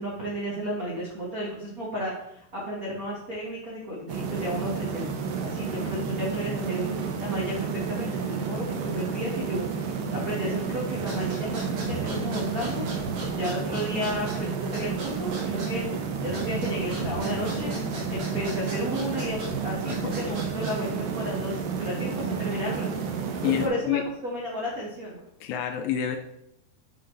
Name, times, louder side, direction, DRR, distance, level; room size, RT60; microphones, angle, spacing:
voice 1, 0.0-12.9 13.3-17.7 18.1-22.9 23.4-25.2, equal, 90° right, -5 dB, 0.7 m, -33 dB
sound 1, 4.1-23.7, right 5 dB, 75° right, 2.4 m, -31 dB
sound 2, 11.0-21.0, right 2 dB, 45° right, 3.5 m, -38 dB
voice 2, 19.9-20.4 23.4-24.1 25.4-26.2, left 10 dB, 80° left, 6 dB, 2.2 m, -28 dB
10.0 x 4.7 x 3.3 m, 0.77 s
omnidirectional pair, 4.5 m